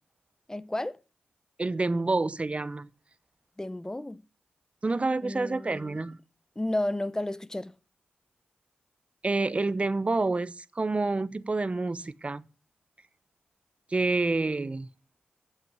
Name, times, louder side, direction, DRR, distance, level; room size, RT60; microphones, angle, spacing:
voice 1, 0.5-1.0 3.6-4.2 5.2-6.0 6.6-7.7, left 1 dB, 15° left, 0.8 m, -32 dB
voice 2, 1.6-2.9 4.8-6.2 9.2-12.4 13.9-14.9, right 3 dB, 35° right, 0.9 m, -28 dB
8.4 x 7.8 x 9.0 m
cardioid pair, 40°, 3 cm